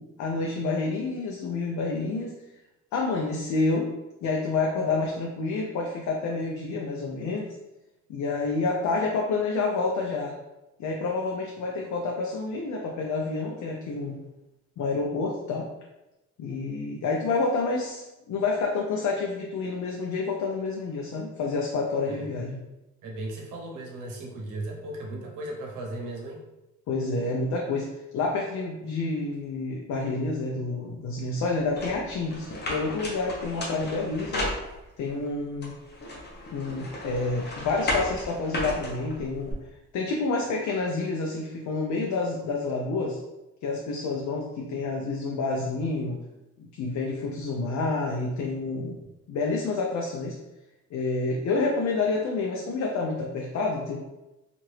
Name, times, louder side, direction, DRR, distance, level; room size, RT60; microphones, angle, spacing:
voice 1, 0.0-2.3 2.9-3.9 4.2-7.5 8.1-10.4 10.8-14.2 14.8-15.7 16.4-22.6 26.9-34.5 35.0-35.7 36.5-39.6 39.9-43.2 43.6-46.2 46.6-49.0 49.3-50.4 50.9-54.0, left 3 dB, 65° left, 0 dB, 0.5 m, -28 dB
voice 2, 23.0-26.4, right 2 dB, 85° right, -1 dB, 0.8 m, -36 dB
sound 1, 31.8-35.1 35.6-39.5, left 1 dB, 35° left, 0.8 m, -34 dB
2.8 x 2.5 x 3.2 m, 0.99 s
cardioid pair, 90°, 30 cm